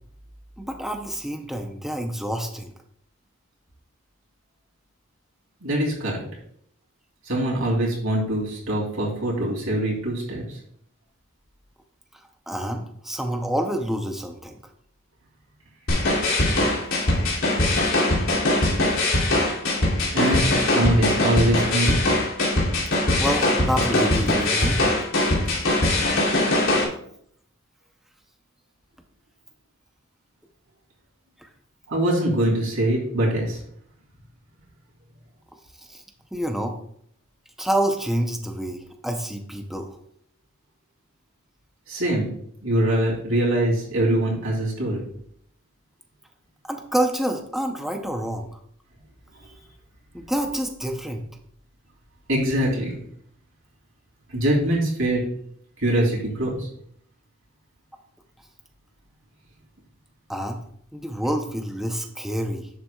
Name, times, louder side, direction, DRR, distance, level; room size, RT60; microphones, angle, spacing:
voice 1, 0.6-2.7 12.5-14.6 23.2-24.8 31.4-31.5 35.8-36.0 36.3-36.8 37.6-39.9 46.6-48.6 50.1-51.3 60.3-60.6 60.9-62.7, right 1 dB, ahead, 3 dB, 0.6 m, -28 dB
voice 2, 5.6-6.2 7.2-10.6 20.1-22.0 31.9-33.6 41.9-42.3 42.6-45.0 52.3-53.0 54.3-55.2 55.8-56.7, right 1 dB, 75° right, -3 dB, 2.9 m, -23 dB
sound 1, 15.9-26.8, left 1 dB, 80° left, 2.6 m, -21 dB
11.0 x 7.4 x 2.3 m, 0.67 s
head